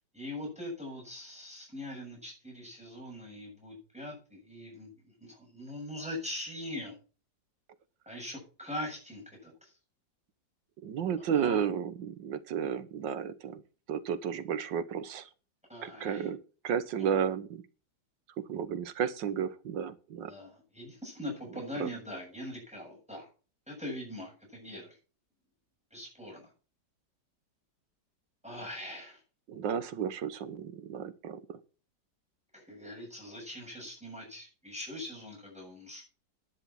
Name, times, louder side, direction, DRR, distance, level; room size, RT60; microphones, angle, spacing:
voice 1, 0.1-4.9 5.2-6.9 8.1-9.7 11.3-11.6 15.7-16.3 20.3-23.3 23.7-25.0 25.9-26.5 28.4-29.2 32.5-36.0, left 1 dB, 5° right, -1 dB, 7.7 m, -42 dB
voice 2, 10.8-13.6 13.9-15.3 15.8-16.4 16.6-17.6 18.4-20.3 21.8-21.9 29.5-31.6, right 8 dB, 85° right, 14 dB, 1.8 m, -33 dB
10.5 x 10.5 x 5.8 m, 0.36 s
omnidirectional pair, 2.0 m